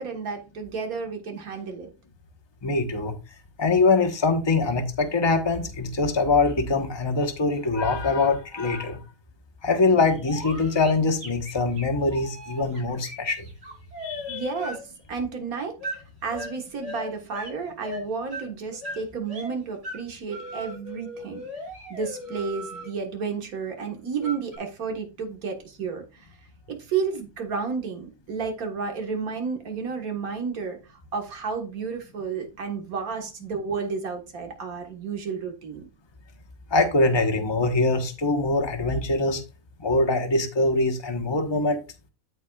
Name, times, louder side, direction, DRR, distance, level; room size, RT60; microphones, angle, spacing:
voice 1, 0.0-1.9 14.3-21.4 21.9-26.3 26.7-35.9, right 5 dB, 85° right, 1.9 m, -32 dB
voice 2, 2.6-3.1 3.6-9.0 9.6-13.5 14.0-14.4 36.7-39.4 39.8-41.8, left 3 dB, 20° left, 1.1 m, -23 dB
sound 1, 10.2-14.8 15.8-16.0 16.3-17.5 17.8-19.5 19.8-20.0 20.3-22.9 24.2-24.6, left 1 dB, 45° right, 3.0 m, -37 dB
13.5 x 4.6 x 2.3 m
omnidirectional pair, 1.5 m